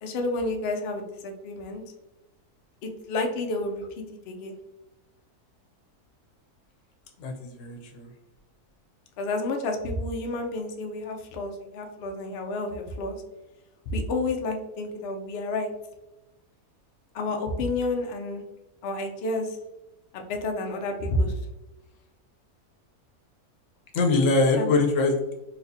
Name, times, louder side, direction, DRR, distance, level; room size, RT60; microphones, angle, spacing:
voice 1, 0.0-1.8 2.8-3.9 4.3-4.5 9.2-13.2 13.9-15.7 17.1-18.4 18.8-19.6 20.1-21.3 24.5-24.7, left 2 dB, 85° left, 3 dB, 0.5 m, -30 dB
voice 2, 7.2-8.1 23.9-25.3, left 3 dB, 60° left, 3 dB, 0.9 m, -23 dB
4.2 x 2.4 x 2.6 m, 1.0 s
omnidirectional pair, 1.7 m